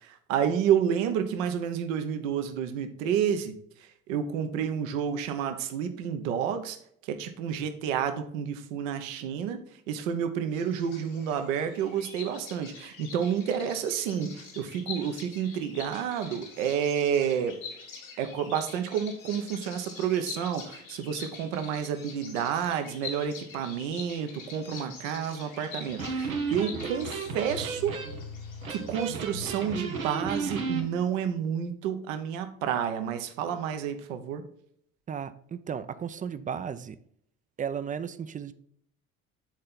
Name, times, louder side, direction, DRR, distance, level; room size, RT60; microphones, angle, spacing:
voice 1, 0.0-3.6 4.1-6.8 7.0-17.6 18.2-28.0 28.7-34.4, right 8 dB, 70° right, 0.9 m, -30 dB
Bird vocalization bird call bird song, 10.5-30.1, left 5 dB, 85° left, 2.1 m, -45 dB
Electric guitar, 25.8-30.9, right 4 dB, 90° right, 0.9 m, -34 dB
voice 2, 35.1-37.0 37.6-38.5, right 7 dB, 20° right, 0.4 m, -34 dB
8.9 x 4.2 x 3.8 m
figure-of-eight pair, 60°, 41 cm